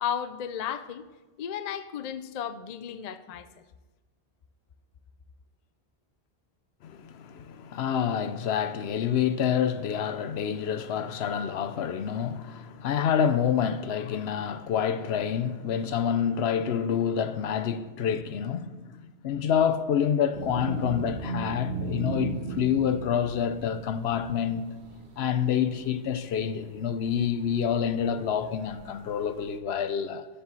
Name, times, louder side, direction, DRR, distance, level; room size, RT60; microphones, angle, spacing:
voice 1, 0.0-1.0 1.4-3.5, left 9 dB, 50° left, 0.5 m, -34 dB
voice 2, 6.8-24.6 25.2-30.3, left 8 dB, 75° left, 0.8 m, -27 dB
sound 1, 20.3-29.6, right 4 dB, 80° right, 1.2 m, -38 dB
7.4 x 6.9 x 7.5 m
omnidirectional pair, 1.1 m